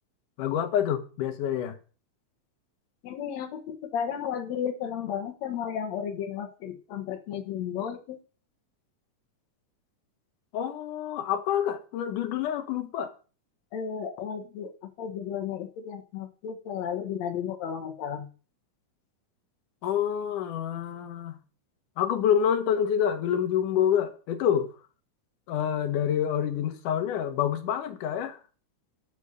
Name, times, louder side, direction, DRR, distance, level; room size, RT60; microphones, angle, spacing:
voice 1, 0.4-1.8 10.5-13.1 19.8-21.4 22.0-24.7 25.5-28.4, left 9 dB, 80° left, 2.7 m, -27 dB
voice 2, 3.0-8.2 13.7-18.3, left 8 dB, 65° left, 2.5 m, -33 dB
8.3 x 7.3 x 6.8 m
omnidirectional pair, 3.6 m